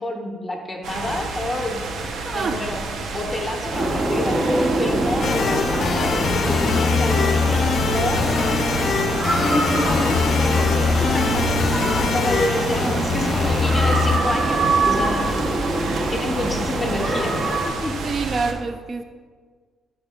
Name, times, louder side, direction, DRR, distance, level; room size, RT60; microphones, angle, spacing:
voice 1, 0.0-1.8 2.3-2.8 3.1-8.6 9.0-15.3 16.1-17.3 17.7-17.9, left 1 dB, 15° left, 1 dB, 1.1 m, -28 dB
sound 1, 0.8-18.5, right 3 dB, 75° right, 0.6 m, -31 dB
voice 2, 2.2-2.6 3.8-3.9 12.8-13.8 18.0-19.0, right 4 dB, 45° right, 8 dB, 0.3 m, -28 dB
sound 2, 3.7-17.7, right 2 dB, 25° right, 0.7 m, -25 dB
sound 3, 5.2-14.2, left 5 dB, 55° left, 0.3 m, -22 dB
8.6 x 5.5 x 2.2 m, 1.5 s
cardioid pair, 90°, 0 cm